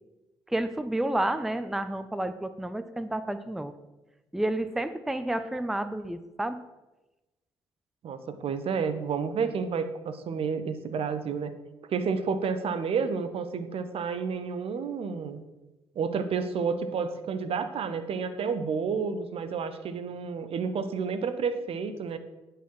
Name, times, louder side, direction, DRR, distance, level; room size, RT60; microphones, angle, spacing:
voice 1, 0.5-3.7 4.3-6.6, right 1 dB, 5° right, 12 dB, 0.5 m, -30 dB
voice 2, 8.0-11.5 11.9-15.4 15.9-22.2, right 5 dB, 55° right, 11 dB, 0.7 m, -30 dB
9.9 x 4.7 x 4.7 m, 1.1 s
hypercardioid pair, 50°, 12 cm